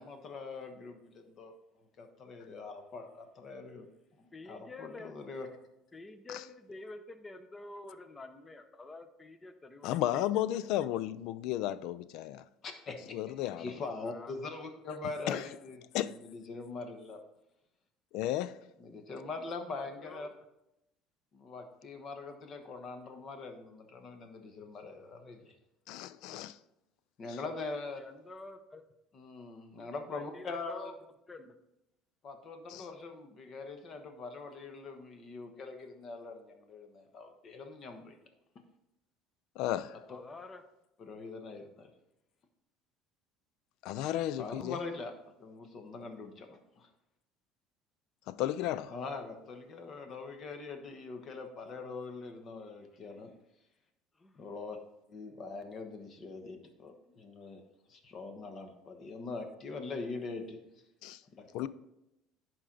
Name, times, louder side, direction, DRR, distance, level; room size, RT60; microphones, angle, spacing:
voice 1, 0.0-1.5 2.0-3.9 4.2-5.5 12.6-15.8 16.0-17.2 18.8-20.3 21.3-25.5 27.2-28.0 29.1-30.9 32.2-38.2 41.0-41.9 44.4-45.1 45.4-46.9 48.9-53.3 54.3-54.8 55.1-57.6 57.9-60.6 61.4-61.5, left 3 dB, 40° left, 1.2 m, -43 dB
voice 2, 4.3-5.1 5.9-10.2 14.1-14.4 19.8-20.3 28.0-28.8 30.1-30.9 31.3-31.5 40.1-40.6 54.2-54.4, left 2 dB, 20° left, 0.8 m, -48 dB
voice 3, 9.8-12.4 13.1-13.6 15.3-15.4 15.9-16.1 18.1-18.6 25.9-26.6 27.3-27.4 32.7-32.9 39.6-40.0 43.8-44.8 48.3-48.9 61.0-61.2 61.5-61.7, left 13 dB, 70° left, 0.4 m, -33 dB
11.0 x 4.5 x 3.9 m
cardioid pair, 125°, 0 cm